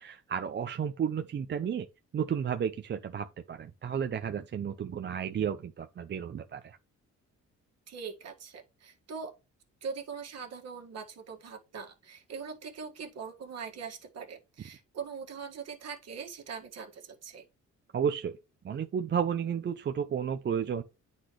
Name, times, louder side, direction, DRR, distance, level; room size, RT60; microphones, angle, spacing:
voice 1, 0.0-1.9 2.1-6.8 17.9-18.4 18.6-20.8, right 8 dB, 35° right, 0.5 m, -32 dB
voice 2, 7.9-9.3 9.8-17.5, right 6 dB, 55° right, 1.7 m, -42 dB
9.6 x 4.1 x 3.0 m
cardioid pair, 90°, 30 cm